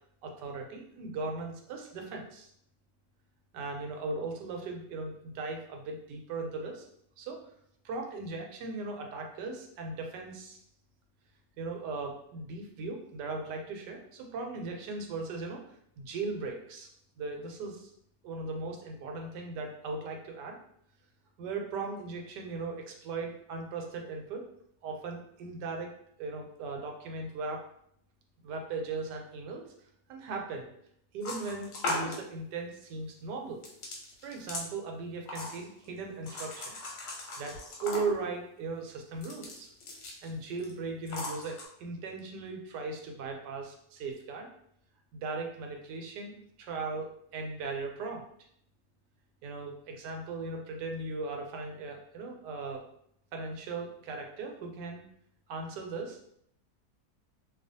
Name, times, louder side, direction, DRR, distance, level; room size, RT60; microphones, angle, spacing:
voice 1, 0.2-2.5 3.5-6.9 7.2-7.4 7.8-10.6 11.6-15.6 16.0-16.9 17.2-17.9 18.2-20.6 21.4-24.4 24.8-25.9 26.2-27.6 28.4-29.6 30.1-30.7 31.1-33.6 34.2-36.8 37.4-39.7 40.2-44.5 45.1-48.3 49.4-52.8 53.3-55.0 55.5-56.2, right 3 dB, 85° right, 2 dB, 1.2 m, -38 dB
sound 1, 31.2-32.2 33.6-34.7 35.3-35.8 36.3-38.3 39.1-40.3 40.6-40.7 41.1-41.6, left 2 dB, 85° left, 1.3 m, -38 dB
2.7 x 2.4 x 2.6 m, 0.70 s
omnidirectional pair, 1.8 m